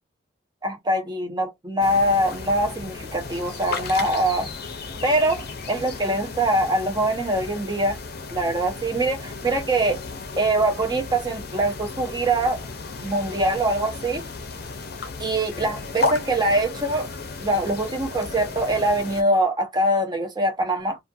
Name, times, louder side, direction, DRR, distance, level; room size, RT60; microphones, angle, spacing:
voice 1, 0.6-4.5 5.0-8.0 8.3-10.0 10.4-12.6 13.0-14.2 15.2-17.1 17.4-21.0, right 1 dB, 25° right, 0.9 m, -23 dB
sound 1, 1.8-19.2, left 4 dB, 55° left, 0.7 m, -34 dB
2.5 x 2.5 x 2.6 m
head